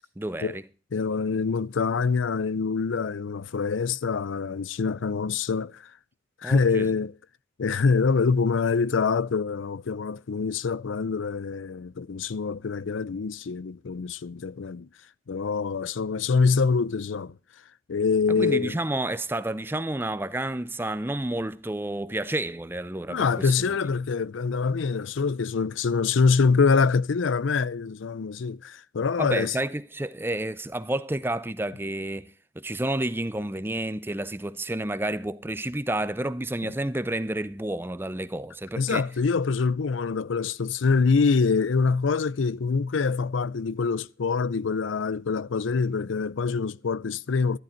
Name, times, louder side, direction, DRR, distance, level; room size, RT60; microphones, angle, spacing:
voice 1, 0.2-0.6 6.4-6.9 18.4-23.8 29.2-32.3 32.6-39.1, right 1 dB, 10° right, 0.5 m, -30 dB
voice 2, 0.9-5.9 6.4-7.1 7.6-14.9 15.3-17.4 17.9-18.8 23.1-29.6 36.6-36.7 38.8-47.6, left 5 dB, 90° left, 0.5 m, -25 dB
13.5 x 11.5 x 4.4 m
head